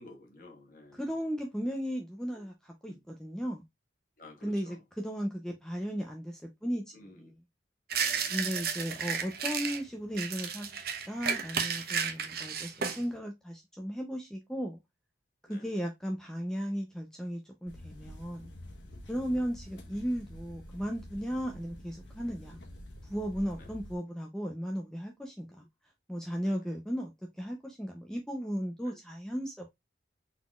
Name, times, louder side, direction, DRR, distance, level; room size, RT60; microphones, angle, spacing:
voice 1, 0.0-1.0 2.3-2.5 2.8-3.0 4.2-4.8 6.9-7.3 7.9-8.5 12.1-12.6 12.9-13.2 15.5-15.7 18.9-19.4 22.5-22.6 23.5-23.7 26.4-26.7 28.8-29.0, left 2 dB, 50° left, 1.5 m, -55 dB
voice 2, 0.9-3.6 4.4-7.2 8.3-14.8 15.5-18.5 19.1-22.6 23.0-25.6 26.1-27.1 27.4-29.7, equal, 5° left, 0.6 m, -36 dB
sound 1, 7.9-9.8 10.2-13.0, right 6 dB, 55° right, 0.8 m, -33 dB
sound 2, 17.7-24.0, equal, 75° left, 1.2 m, -48 dB
4.0 x 3.9 x 2.4 m
head